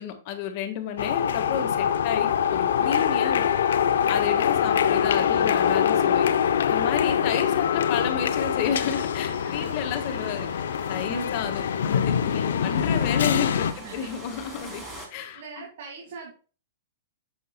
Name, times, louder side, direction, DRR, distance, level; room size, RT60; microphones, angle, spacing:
voice 1, 0.0-3.4 4.1-6.3 6.7-10.5 10.9-14.8 15.1-15.4, left 8 dB, 45° left, 6 dB, 1.5 m, -31 dB
sound 1, 1.0-13.7, left 8 dB, 80° left, 0.6 m, -24 dB
sound 2, 2.3-15.1, equal, 10° right, 3.1 m, -47 dB
voice 2, 5.0-5.5 8.6-8.9 9.4-9.7 11.1-11.4 13.7-14.1 15.3-16.3, right 5 dB, 65° right, 0 dB, 2.0 m, -41 dB
9.3 x 7.1 x 2.3 m, 0.38 s
hypercardioid pair, 145°, 0 cm